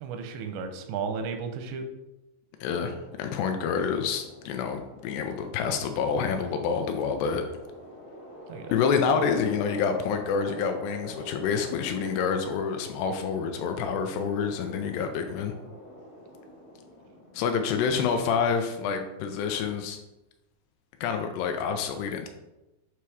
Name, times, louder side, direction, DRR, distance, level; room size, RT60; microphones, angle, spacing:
voice 1, 0.0-1.8 8.5-8.7, right 5 dB, 85° right, 6 dB, 2.9 m, -34 dB
voice 2, 2.6-7.4 8.7-15.5 17.3-20.0 21.0-22.3, left 6 dB, 80° left, 6 dB, 2.5 m, -28 dB
sound 1, 2.6-19.0, left 1 dB, 55° left, 1.4 m, -46 dB
8.2 x 2.9 x 4.7 m, 0.98 s
omnidirectional pair, 5.0 m